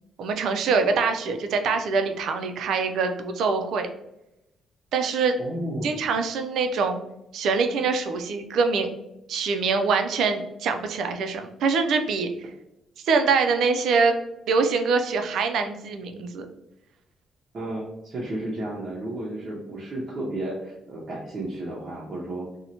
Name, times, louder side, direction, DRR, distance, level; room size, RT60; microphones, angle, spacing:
voice 1, 0.2-3.9 4.9-5.4 5.8-7.0 7.3-8.9 9.3-12.5 13.0-14.2 14.5-16.5, right 4 dB, 75° right, 6 dB, 0.3 m, -24 dB
voice 2, 5.4-5.9 17.5-22.5, right 1 dB, 45° right, -5 dB, 0.6 m, -32 dB
2.7 x 2.1 x 2.8 m, 0.88 s
cardioid pair, 90°, 0 cm